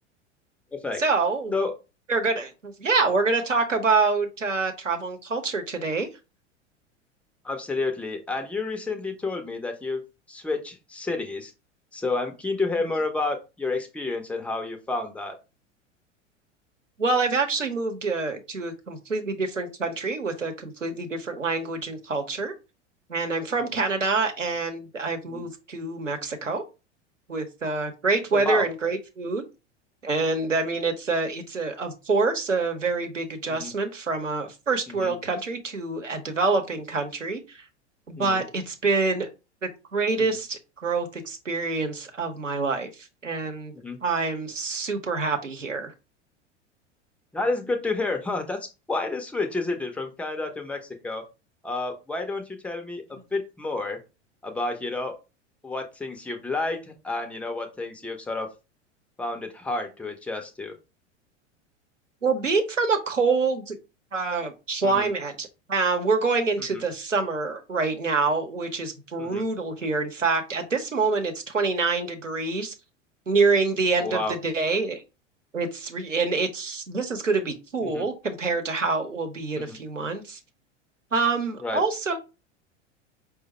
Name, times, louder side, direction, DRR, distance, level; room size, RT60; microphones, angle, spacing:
voice 1, 1.0-1.5 2.1-6.1 17.0-22.5 23.1-26.6 27.3-29.4 30.0-37.6 38.1-39.3 39.6-42.9 43.2-43.7 44.0-45.9 62.2-63.8 64.1-72.7 73.3-75.0 75.5-80.4 81.1-82.2, right 4 dB, 85° right, 5 dB, 0.8 m, -26 dB
voice 2, 7.4-10.0 10.3-11.5 11.9-15.4 23.5-23.6 25.2-25.4 28.3-28.7 33.5-33.7 34.9-35.1 38.2-38.4 40.2-40.4 43.7-44.0 47.3-48.6 48.9-51.2 51.6-53.0 53.3-54.0 54.4-55.1 55.6-58.5 59.2-60.7 64.8-65.1 66.6-66.8 69.2-69.4 74.0-74.4 77.8-78.0 79.6-79.8 81.6-81.8, left 3 dB, 5° left, 5 dB, 0.3 m, -30 dB
4.8 x 2.1 x 4.0 m, 0.29 s
figure-of-eight pair, 85°, 36 cm